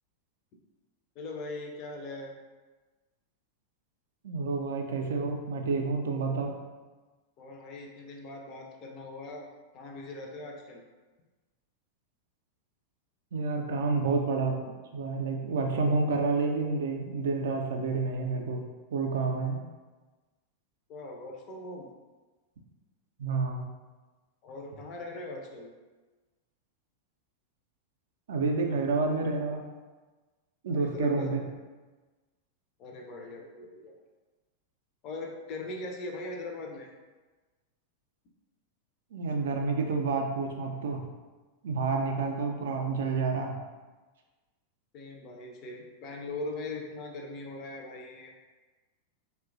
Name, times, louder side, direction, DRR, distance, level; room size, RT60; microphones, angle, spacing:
voice 1, 1.2-2.3 7.4-9.5 9.7-10.8 20.9-21.9 24.4-25.7 30.7-31.3 32.8-33.9 35.0-36.9 44.9-48.3, left 2 dB, 40° left, 1 dB, 0.4 m, -40 dB
voice 2, 4.2-6.6 13.3-14.6 14.9-18.6 18.9-19.6 23.2-23.6 28.3-29.6 30.6-31.4 39.1-41.0 41.6-43.5, right 4 dB, 60° right, 2 dB, 0.3 m, -29 dB
2.9 x 2.1 x 2.4 m, 1.3 s
figure-of-eight pair, 90°, 0 cm